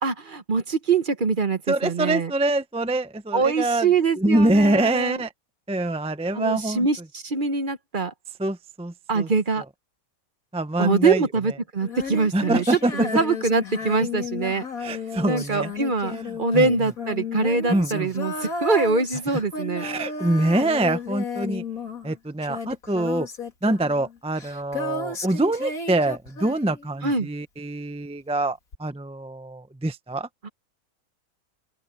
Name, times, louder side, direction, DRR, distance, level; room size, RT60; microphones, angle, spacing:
voice 1, 0.0-2.3 3.3-5.2 6.3-8.1 9.1-9.6 10.8-14.7 14.9-15.0 15.3-19.8 27.0-27.3 30.4-30.5, right 4 dB, 40° right, 1.0 m, -24 dB
voice 2, 1.7-3.9 4.2-5.3 5.7-6.9 8.4-9.3 10.5-11.3 12.3-13.1 14.8-15.7 16.1-16.7 17.7-18.1 19.8-21.6 22.0-23.3 23.6-30.3, right 2 dB, 5° right, 0.5 m, -25 dB
Female singing, 11.8-27.2 28.7-28.8, left 4 dB, 70° left, 3.0 m, -33 dB
open air
omnidirectional pair, 1.5 m